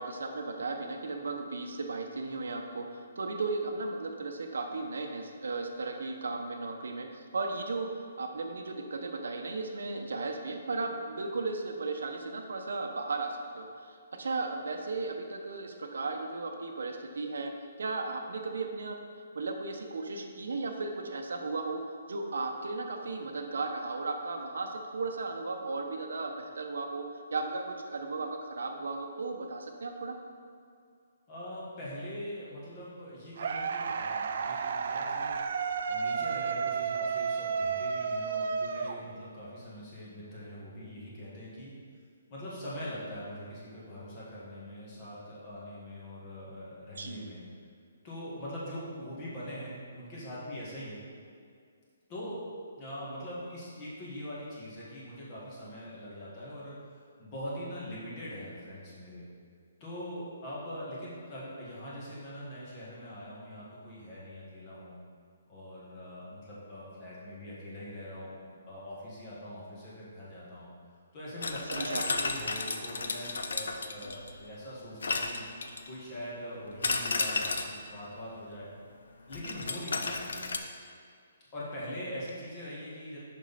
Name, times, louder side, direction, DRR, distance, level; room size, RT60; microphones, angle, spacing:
voice 1, 0.0-7.9 8.2-17.5 17.8-19.0 19.3-21.8 22.1-30.1 47.0-47.3 71.7-72.1, right 3 dB, 80° right, 4 dB, 0.8 m, -35 dB
voice 2, 31.3-35.4 35.9-41.7 42.3-47.4 48.0-51.0 52.1-52.4 52.8-56.9 57.2-59.2 59.8-64.9 65.5-70.7 71.1-75.4 75.9-78.7 79.3-80.5 81.5-83.2, equal, 25° left, -7 dB, 1.8 m, -42 dB
sound 1, 33.4-39.5, right 5 dB, 55° right, 0.3 m, -32 dB
sound 2, 71.4-74.4 75.0-76.0 76.8-77.8 79.3-80.6, left 3 dB, 80° left, 0.6 m, -33 dB
6.3 x 5.5 x 4.1 m, 2.3 s
hypercardioid pair, 165°, 0 cm